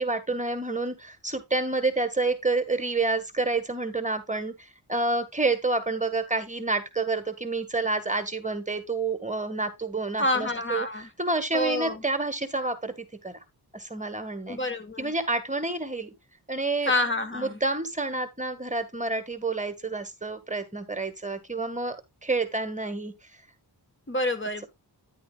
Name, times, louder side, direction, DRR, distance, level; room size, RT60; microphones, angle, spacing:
voice 1, 0.0-13.4 13.7-14.6 15.0-16.1 16.5-16.9 17.3-22.0 22.2-23.1, right 3 dB, 20° right, 1.6 m, -29 dB
voice 2, 10.2-11.1 11.5-12.0 14.5-15.1 16.8-17.6 24.1-24.7, left 1 dB, 30° left, 1.5 m, -27 dB
10.5 x 8.4 x 2.4 m
cardioid pair, 60°, 40 cm